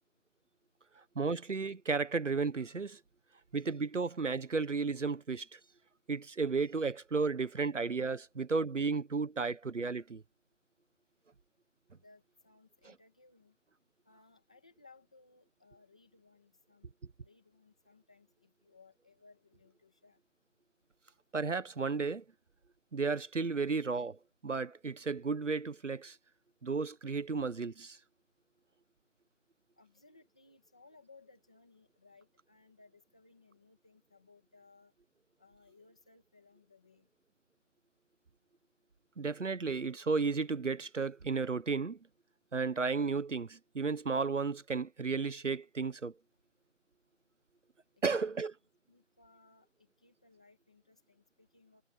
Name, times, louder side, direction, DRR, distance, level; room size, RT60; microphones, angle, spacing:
voice 1, 1.1-3.0 3.5-5.6 6.1-10.2 21.3-22.2 22.9-26.2 26.6-28.0 39.2-42.0 42.5-46.1 48.0-48.5, right 4 dB, 70° right, 1.2 m, -33 dB
voice 2, 12.0-13.6 14.1-16.9 17.2-20.2 29.8-34.9 35.4-37.1 48.0-48.5 48.9-51.8, left 3 dB, 5° left, 1.8 m, -63 dB
figure-of-eight pair, 180°, 38 cm